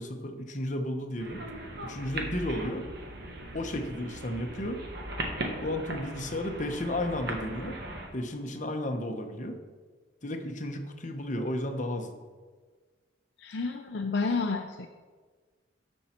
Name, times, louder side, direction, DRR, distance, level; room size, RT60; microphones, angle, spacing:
voice 1, 0.0-1.4 1.8-2.8 3.5-4.8 5.6-7.8 8.1-9.6 10.2-12.1, left 1 dB, 40° left, 4 dB, 1.0 m, -33 dB
sound 1, 1.2-8.1, right 1 dB, 55° right, 1.4 m, -38 dB
voice 2, 13.4-14.9, left 4 dB, 60° left, 4 dB, 0.5 m, -30 dB
13.0 x 5.5 x 4.5 m, 1.4 s
head